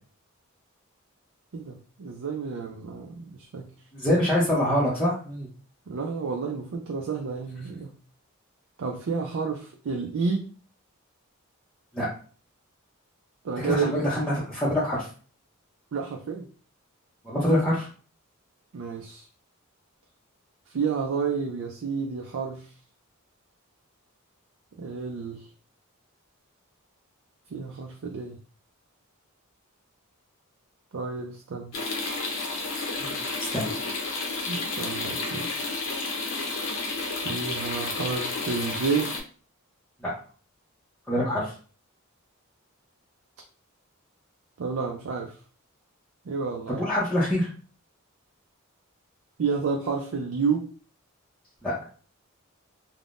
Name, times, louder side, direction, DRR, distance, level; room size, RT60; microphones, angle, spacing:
voice 1, 1.5-3.7 5.9-7.9 8.8-10.5 13.4-14.0 15.9-16.5 18.7-19.3 20.7-22.7 24.8-25.5 27.5-28.4 30.9-31.7 34.5-35.5 37.2-39.1 44.6-45.3 46.3-46.8 49.4-50.7, right 5 dB, 65° right, 2 dB, 0.4 m, -30 dB
voice 2, 3.9-5.5 11.9-12.1 13.6-15.1 17.2-17.9 33.0-33.1 33.5-34.0 41.1-41.5 46.8-47.5 51.6-51.7, left 1 dB, 5° left, -9 dB, 0.6 m, -25 dB
sound 1, 31.7-39.2, left 3 dB, 65° left, 0.7 m, -31 dB
3.4 x 2.1 x 2.5 m, 0.40 s
head